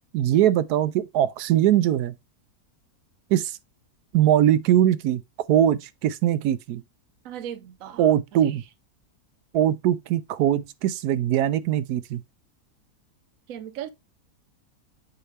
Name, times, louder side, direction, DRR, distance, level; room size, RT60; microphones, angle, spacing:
voice 1, 0.1-2.1 3.3-3.6 4.1-5.2 5.5-6.8 8.0-8.6 9.5-12.2, right 11 dB, 90° right, 1.1 m, -21 dB
voice 2, 7.2-8.1 8.4-8.6 13.5-13.9, right 10 dB, 65° right, 1.1 m, -37 dB
8.2 x 4.2 x 3.2 m
omnidirectional pair, 1.6 m